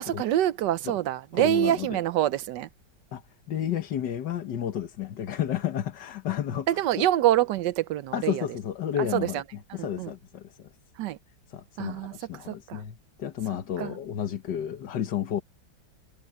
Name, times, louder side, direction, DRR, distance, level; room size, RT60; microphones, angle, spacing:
voice 1, 0.0-2.7 6.7-8.4 9.0-9.4 9.8-10.1 11.0-11.2 11.8-12.1 12.5-12.8 13.8-13.9, right 13 dB, 80° right, 1.3 m, -26 dB
voice 2, 1.3-2.0 3.1-3.2 3.5-6.8 8.1-10.7 11.5-15.4, left 10 dB, 80° left, 1.9 m, -32 dB
omnidirectional pair, 1.9 m